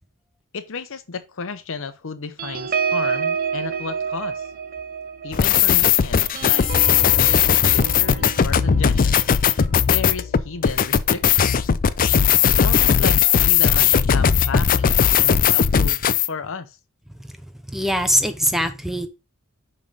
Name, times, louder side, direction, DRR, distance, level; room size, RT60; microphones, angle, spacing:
voice 1, 0.5-4.4 5.2-6.7 6.9-9.3 9.9-11.6 12.4-16.8, left 5 dB, 60° left, 0.8 m, -33 dB
sound 1, 2.4-11.3 11.7-12.0 12.2-12.6, right 6 dB, 40° right, 0.7 m, -30 dB
sound 2, 5.3-16.3, left 8 dB, 40° left, 0.4 m, -18 dB
voice 2, 17.7-19.1, equal, ahead, 0.8 m, -22 dB
5.5 x 5.3 x 5.3 m
head